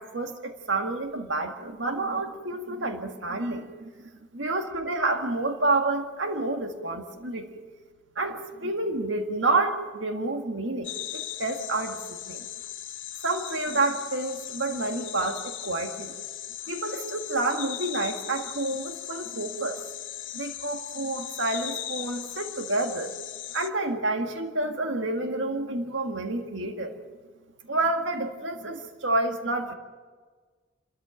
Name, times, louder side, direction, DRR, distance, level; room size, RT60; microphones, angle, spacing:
voice 1, 0.0-7.6 8.2-12.4 13.2-16.1 16.7-19.8 20.3-23.1 23.5-27.0 27.6-29.7, right 2 dB, 80° right, 5 dB, 1.8 m, -29 dB
sound 1, 10.8-23.7, left 12 dB, 80° left, 1.0 m, -38 dB
27.5 x 13.5 x 8.9 m, 1.5 s
head